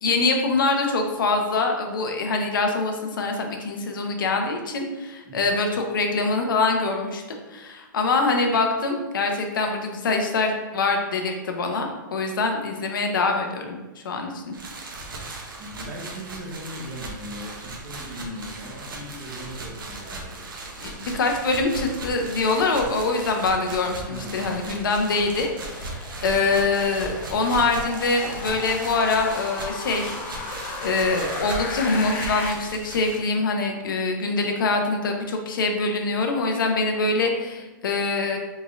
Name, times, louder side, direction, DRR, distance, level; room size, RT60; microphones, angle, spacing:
voice 1, 0.0-7.2 7.5-14.5 20.8-30.2 30.5-38.4, left 3 dB, 80° left, 3 dB, 0.6 m, -24 dB
sound 1, 14.5-33.2, right 2 dB, 85° right, 0.8 m, -37 dB
voice 2, 15.6-20.4 24.1-24.9 26.2-26.4, equal, 35° right, -1 dB, 0.8 m, -39 dB
sound 2, 23.6-32.5, left 3 dB, 20° left, 0.4 m, -36 dB
3.7 x 3.1 x 2.4 m, 1.1 s
hypercardioid pair, 145°, 11 cm